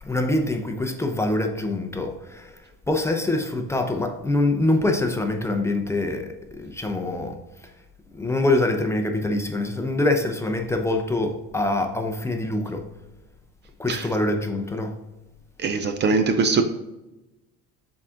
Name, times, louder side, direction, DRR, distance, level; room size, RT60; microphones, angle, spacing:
voice 1, 0.0-2.5 2.9-7.4 8.1-12.8 13.8-14.9, left 2 dB, 10° left, 4 dB, 0.6 m, -24 dB
voice 2, 15.6-16.6, right 4 dB, 35° right, 7 dB, 0.5 m, -21 dB
6.7 x 3.8 x 3.8 m, 1.0 s
cardioid pair, 125°, 30 cm